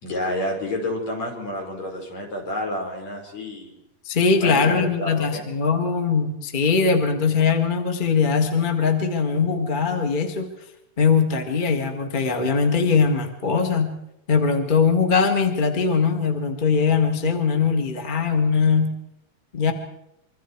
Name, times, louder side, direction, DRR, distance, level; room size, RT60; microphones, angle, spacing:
voice 1, 0.0-3.8 4.4-5.4, left 1 dB, 55° left, 0 dB, 6.3 m, -29 dB
voice 2, 4.0-10.5 11.0-14.0 14.3-19.0 19.5-19.7, left 5 dB, 20° left, 5 dB, 1.3 m, -21 dB
26.0 x 24.0 x 4.7 m, 0.83 s
omnidirectional pair, 3.8 m